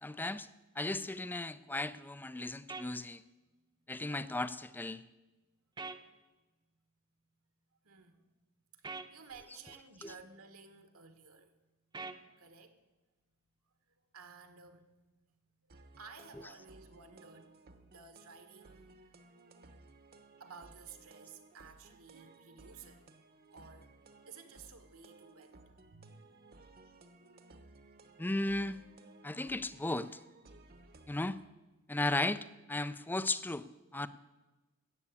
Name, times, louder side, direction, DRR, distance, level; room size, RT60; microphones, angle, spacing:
voice 1, 0.0-0.5 0.8-3.2 3.9-5.0 10.0-10.1 28.2-28.8 29.2-30.1 31.1-31.4 31.9-33.7 33.9-34.1, left 2 dB, 10° left, 15 dB, 0.4 m, -35 dB
sound 1, 2.7-2.9 5.8-6.0 8.8-9.1 11.9-12.2, right 4 dB, 20° right, 0.8 m, -42 dB
voice 2, 7.8-8.3 8.7-11.5 12.4-12.8 14.1-14.8 15.9-17.5 17.8-19.2 20.4-23.0 23.5-23.9 24.3-26.7, right 5 dB, 70° right, 8 dB, 1.5 m, -54 dB
sound 2, 15.7-31.4, right 2 dB, 45° right, 1.0 m, -59 dB
14.0 x 8.3 x 8.4 m, 1.1 s
head